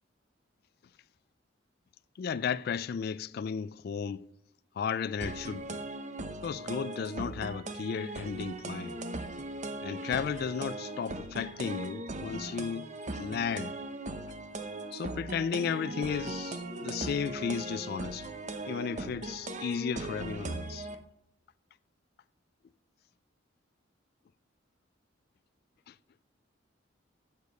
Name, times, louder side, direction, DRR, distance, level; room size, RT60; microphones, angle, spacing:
voice 1, 2.2-4.3 4.8-5.8 6.4-9.0 9.8-12.9 13.2-13.7 14.9-18.3 18.7-20.9, left 6 dB, 50° left, 0.3 m, -34 dB
sound 1, 5.2-20.9, right 2 dB, 40° right, 0.8 m, -39 dB
8.2 x 6.7 x 6.7 m
head